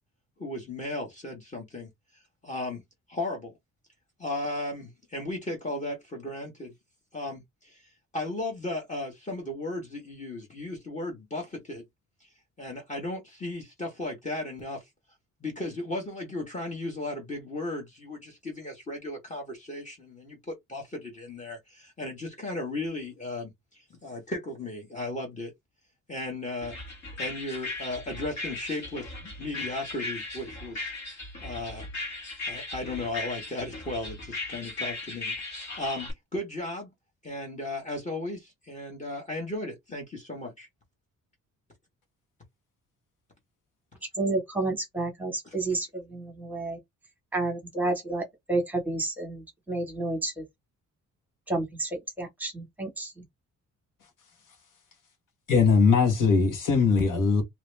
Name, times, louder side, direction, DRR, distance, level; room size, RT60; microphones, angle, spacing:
voice 1, 0.4-1.9 2.4-2.8 3.1-3.5 4.2-6.7 7.1-7.8 8.1-11.8 12.6-14.8 15.4-25.5 26.1-26.7 27.2-30.9 31.4-31.9 32.4-36.9 37.2-40.7, left 2 dB, 25° left, 1.2 m, -35 dB
sound 1, 26.6-36.1, left 2 dB, 60° left, 1.8 m, -37 dB
voice 2, 44.2-46.8 47.3-50.4 51.5-53.2, right 2 dB, 5° right, 1.4 m, -30 dB
voice 3, 55.5-57.4, left 5 dB, 75° left, 1.6 m, -21 dB
2.9 x 2.8 x 3.3 m
cardioid pair, 175°, 32 cm